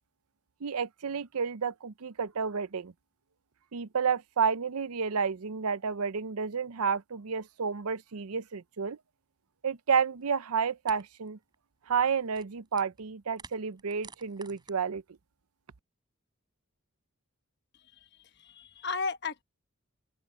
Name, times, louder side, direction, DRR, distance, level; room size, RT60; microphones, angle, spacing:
voice 1, 0.6-2.9 3.7-9.0 9.6-11.4 11.9-15.0, right 6 dB, 85° right, 0.6 m, -30 dB
sound 1, 10.2-10.3 10.9-11.0 11.3-11.5 12.0-13.0 13.3-14.7, right 4 dB, 20° right, 4.3 m, -51 dB
voice 2, 17.7-19.4, left 4 dB, 50° left, 1.1 m, -36 dB
open air
head